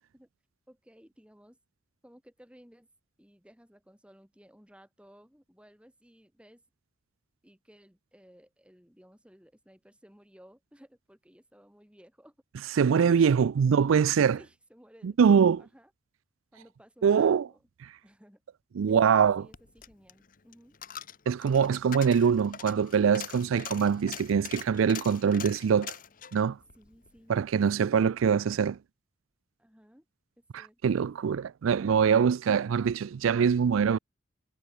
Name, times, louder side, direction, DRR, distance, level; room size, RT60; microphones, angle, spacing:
voice 1, 0.7-1.6 2.0-2.9 3.2-6.6 7.4-12.4 13.1-13.5 14.4-15.9 16.5-17.6 18.0-18.4 18.9-20.8 26.8-27.4 29.6-30.0 30.4-31.1, equal, 5° right, 3.2 m, -57 dB
voice 2, 12.8-14.4 15.0-15.6 17.0-17.5 18.8-19.5 21.3-25.9 26.3-26.6 27.3-28.8 30.5-34.0, right 7 dB, 90° right, 0.4 m, -23 dB
Coin (dropping), 19.3-27.7 28.1-28.2, left 9 dB, 45° left, 1.1 m, -44 dB
head